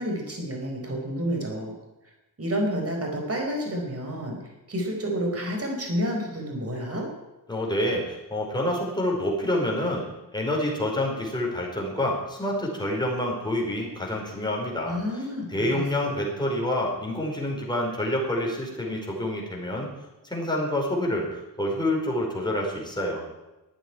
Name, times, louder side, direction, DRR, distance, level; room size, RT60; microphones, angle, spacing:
voice 1, 0.0-1.7 2.4-7.1 14.8-16.2, equal, 35° right, 1 dB, 4.7 m, -30 dB
voice 2, 7.5-10.0 10.3-15.0 15.5-19.9 20.2-23.2, left 1 dB, 10° left, -2 dB, 4.7 m, -27 dB
13.0 x 9.1 x 9.9 m, 1.0 s
wide cardioid pair, 115°, 42 cm